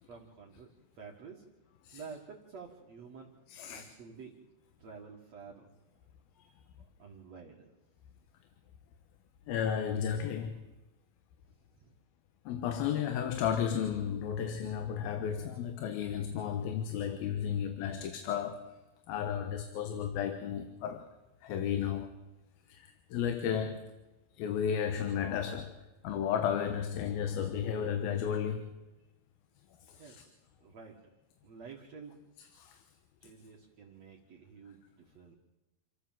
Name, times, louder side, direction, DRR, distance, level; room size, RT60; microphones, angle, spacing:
voice 1, 0.1-0.7 0.9-1.4 1.9-3.4 3.7-4.4 4.8-5.7 6.8-7.7 11.8-11.9 30.0-30.3 30.6-31.1 31.4-32.2 33.2-35.4, right 5 dB, 50° right, 2.7 m, -50 dB
voice 2, 3.5-3.9 9.5-10.6 12.5-18.7 19.1-21.1 21.4-22.1 22.7-23.9 24.4-25.7 26.0-28.7 29.9-30.2 32.4-32.8, left 8 dB, 85° left, 3.1 m, -33 dB
28.5 x 13.0 x 7.6 m
omnidirectional pair, 4.2 m